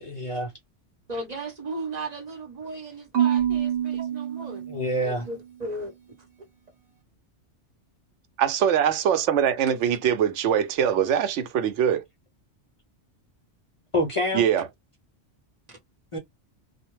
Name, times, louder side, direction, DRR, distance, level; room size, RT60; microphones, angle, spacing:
voice 1, 0.1-0.5 4.7-5.3 13.9-14.4 16.1-16.2, equal, 55° left, 0.3 m, -26 dB
voice 2, 1.1-4.6 5.0-5.9, right 2 dB, 40° right, 0.9 m, -36 dB
Marimba xylophone / Wood, 3.1-5.3, right 10 dB, 60° right, 1.1 m, -26 dB
voice 3, 8.4-12.0 14.3-14.6, right 9 dB, 85° right, 0.9 m, -22 dB
2.2 x 2.1 x 3.0 m
omnidirectional pair, 1.2 m